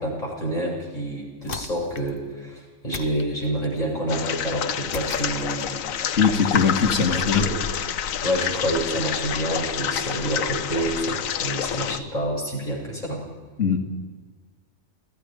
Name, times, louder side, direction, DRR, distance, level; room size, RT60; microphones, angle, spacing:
voice 1, 0.0-5.8 6.1-6.2 7.3-7.5 8.2-13.2, right 1 dB, 30° left, -3 dB, 7.7 m, -28 dB
sound 1, 1.4-2.2 2.9-3.8 4.9-5.8, left 5 dB, 45° left, 1.2 m, -38 dB
sound 2, 4.1-12.0, left 9 dB, 80° left, 1.2 m, -28 dB
voice 2, 6.2-7.5 13.6-13.9, left 5 dB, 60° left, 3 dB, 2.6 m, -21 dB
29.5 x 17.5 x 5.4 m, 1.4 s
omnidirectional pair, 1.4 m